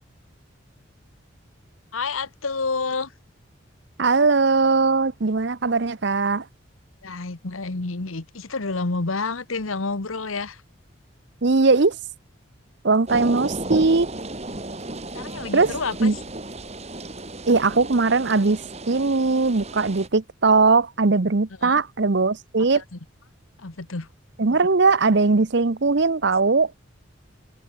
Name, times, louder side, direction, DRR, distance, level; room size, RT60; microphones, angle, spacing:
voice 1, 1.9-3.1 7.0-10.6 15.1-16.1 21.6-21.8 22.7-23.0 23.6-24.1, left 3 dB, 85° left, 1.4 m, -29 dB
voice 2, 4.0-6.4 11.4-12.0 12.8-14.1 15.5-15.7 16.0-16.1 17.5-18.6 18.9-22.8 24.4-26.7, right 3 dB, 55° right, 0.8 m, -19 dB
sound 1, 13.1-20.1, right 2 dB, 30° right, 2.9 m, -34 dB
head